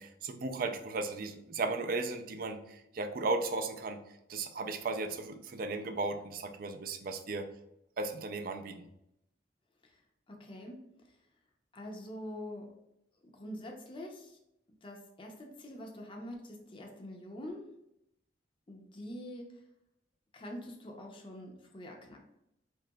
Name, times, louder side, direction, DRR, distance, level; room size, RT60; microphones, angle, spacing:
voice 1, 0.0-4.0 4.3-7.5 8.0-8.8, right 3 dB, 50° right, 7 dB, 0.4 m, -35 dB
voice 2, 10.3-10.8 11.7-12.7 13.3-14.4 14.8-17.7 18.7-19.6 20.3-22.2, left 1 dB, 30° left, 1 dB, 0.5 m, -45 dB
4.7 x 2.9 x 2.2 m, 0.82 s
head